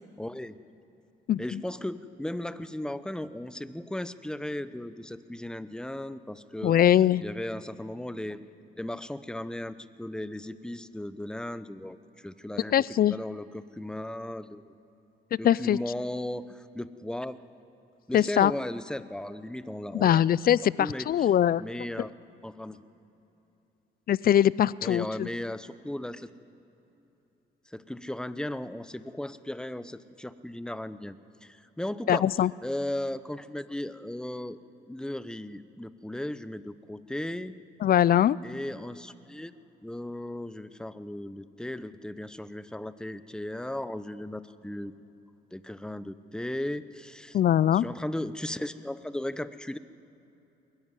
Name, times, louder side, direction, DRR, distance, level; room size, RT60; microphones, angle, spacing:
voice 1, 0.2-0.6 1.4-6.7 7.2-8.4 8.8-12.7 13.1-14.7 15.4-17.4 18.1-20.2 20.8-21.3 21.6-22.1 22.4-22.8 24.8-26.3 27.7-32.3 32.6-34.6 34.9-37.5 38.4-39.5 39.8-44.9 45.5-47.4 47.7-49.8, left 1 dB, 5° left, 14 dB, 0.7 m, -36 dB
voice 2, 1.3-1.6 6.6-7.2 12.7-13.1 15.4-15.8 18.1-18.5 19.9-21.6 24.1-25.3 32.1-32.5 37.8-38.4 47.3-47.9, left 11 dB, 50° left, 21 dB, 0.4 m, -22 dB
21.5 x 13.0 x 9.8 m, 3.0 s
cardioid pair, 90°, 20 cm